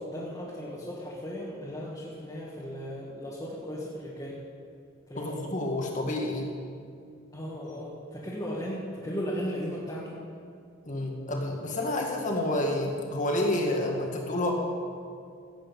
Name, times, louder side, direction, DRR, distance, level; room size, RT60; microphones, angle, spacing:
voice 1, 0.0-4.4 5.1-5.5 7.3-10.1, equal, 20° left, -7 dB, 1.8 m, -36 dB
voice 2, 5.2-6.5 10.9-14.5, left 1 dB, 40° left, 1 dB, 1.8 m, -29 dB
16.5 x 8.5 x 5.4 m, 2.3 s
head